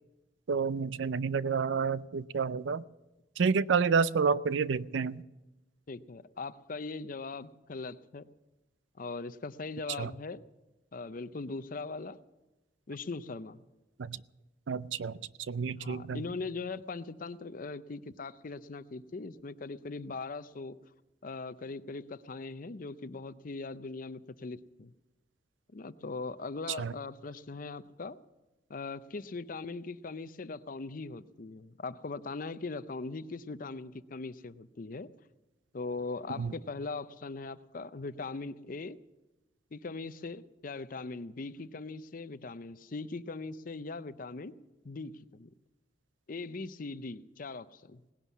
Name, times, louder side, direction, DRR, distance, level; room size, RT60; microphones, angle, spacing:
voice 1, 0.5-2.8 3.4-5.2 10.0-10.1 14.0-14.2 14.7-15.2 15.5-16.2 26.8-26.9 36.4-36.5, right 5 dB, 75° right, 18 dB, 0.5 m, -29 dB
voice 2, 5.9-8.3 9.0-10.4 10.9-12.2 12.9-13.6 15.7-20.8 21.2-24.9 25.7-28.2 28.7-35.1 35.7-39.0 39.7-44.5 44.8-45.5 46.3-48.0, left 3 dB, 45° left, 14 dB, 0.6 m, -40 dB
18.0 x 11.0 x 7.2 m, 1.0 s
head